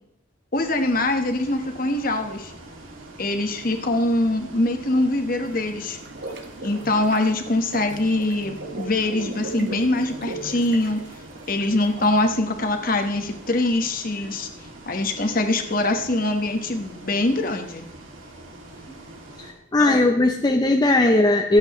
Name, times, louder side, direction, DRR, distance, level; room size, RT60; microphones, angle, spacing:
voice 1, 0.5-2.5 3.2-6.0 6.6-11.0 11.5-14.5 14.9-17.9 19.8-20.0, left 2 dB, 45° left, 6 dB, 1.2 m, -23 dB
Bus, 0.5-19.5, right 1 dB, 80° right, 2.4 m, -43 dB
sound 1, 5.4-12.2, right 2 dB, 60° right, 1.3 m, -37 dB
voice 2, 19.4-21.6, left 2 dB, 20° left, 4 dB, 0.5 m, -18 dB
23.5 x 8.0 x 3.1 m, 0.82 s
head